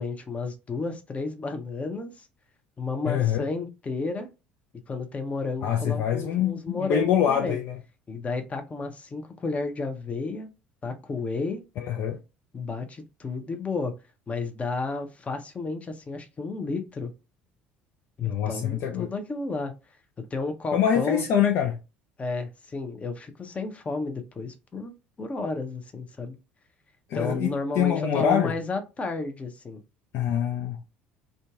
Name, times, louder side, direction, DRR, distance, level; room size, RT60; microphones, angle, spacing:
voice 1, 0.0-2.3 2.8-4.3 4.9-7.6 8.1-10.5 10.8-11.6 12.5-13.9 14.3-17.1 18.2-19.7 20.3-21.2 22.2-24.9 25.2-26.4 27.1-29.8, left 3 dB, 25° left, 0.7 m, -32 dB
voice 2, 3.0-3.5 5.6-7.8 11.9-12.2 18.2-19.1 20.7-21.8 27.1-28.5 30.1-30.8, left 9 dB, 55° left, 0.4 m, -25 dB
2.6 x 2.2 x 2.4 m
figure-of-eight pair, 60°, 5 cm